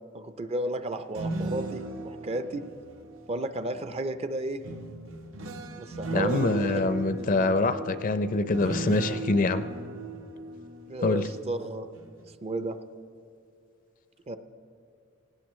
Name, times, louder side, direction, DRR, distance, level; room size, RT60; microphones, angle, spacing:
voice 1, 0.1-2.6 3.3-4.7 5.8-6.8 7.2-7.8 10.9-11.9 12.4-12.8 14.3-14.4, right 1 dB, 30° right, 10 dB, 0.5 m, -33 dB
sound 1, 1.0-3.9 4.6-11.6 11.9-12.3, right 2 dB, 70° right, 0.9 m, -37 dB
voice 2, 6.1-9.7 11.0-11.2, left 2 dB, 40° left, 11 dB, 0.5 m, -25 dB
18.0 x 16.5 x 3.1 m, 2.4 s
head